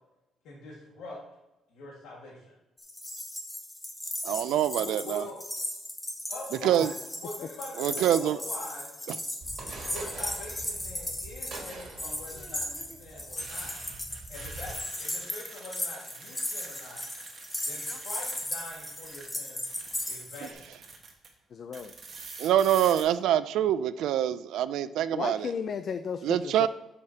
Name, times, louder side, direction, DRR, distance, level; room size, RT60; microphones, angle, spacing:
voice 1, 0.4-1.2 1.7-2.5 4.8-5.4 6.3-6.9 7.2-8.9 9.9-13.8 14.3-14.7 15.0-17.0 17.7-19.6 20.1-20.7, left 2 dB, 90° left, -4 dB, 1.8 m, -44 dB
sound 1, 2.8-20.5, left 1 dB, 10° left, 0.8 m, -37 dB
voice 2, 4.2-5.3 6.6-6.9 7.8-8.4 9.1-9.2 22.4-25.5 26.2-26.7, right 11 dB, 85° right, 14 dB, 0.3 m, -25 dB
sound 2, 9.4-14.7, right 3 dB, 50° right, 2.0 m, -45 dB
sound 3, 9.7-10.1 12.0-19.3 19.6-21.3 21.7-23.0, right 4 dB, 30° right, 1.3 m, -47 dB
voice 3, 21.5-21.9 25.1-26.7, left 6 dB, 40° left, 9 dB, 0.3 m, -35 dB
9.5 x 6.7 x 2.8 m, 0.97 s
cardioid pair, 180°, 0 cm